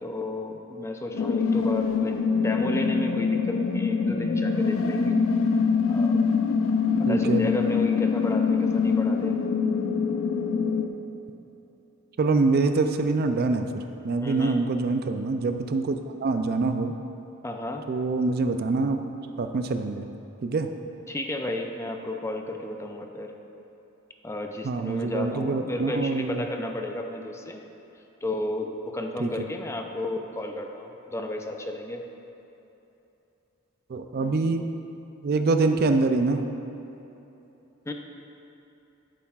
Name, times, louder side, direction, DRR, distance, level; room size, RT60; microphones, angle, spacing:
voice 1, 0.0-5.2 5.9-6.2 7.0-9.4 14.2-14.6 17.4-17.8 21.1-23.3 24.2-27.6 28.2-32.0 37.9-38.0, left 1 dB, 15° left, 4 dB, 0.5 m, -32 dB
sound 1, 1.1-10.9, left 5 dB, 70° left, 0.4 m, -24 dB
voice 2, 7.1-7.5 12.2-16.9 17.9-19.0 19.4-20.1 20.4-20.7 24.6-26.4 29.2-29.3 33.9-34.7 35.2-36.4, right 3 dB, 50° right, 7 dB, 0.4 m, -25 dB
10.5 x 8.5 x 2.4 m, 3.0 s
head